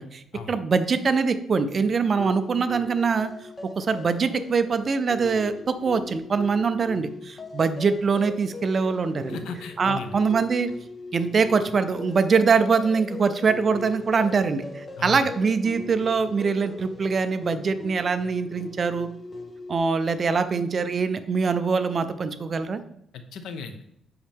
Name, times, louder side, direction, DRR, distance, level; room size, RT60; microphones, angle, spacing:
voice 1, 0.0-3.3 3.8-9.4 9.8-10.7 11.1-19.1 19.7-22.8, right 5 dB, 30° right, 10 dB, 0.5 m, -23 dB
sound 1, 2.2-19.8, left 3 dB, 20° left, 0.7 m, -40 dB
voice 2, 9.3-10.2 15.0-15.3 23.1-23.8, left 5 dB, 85° left, 8 dB, 0.9 m, -36 dB
7.7 x 5.6 x 3.6 m, 0.74 s
cardioid pair, 165°, 0 cm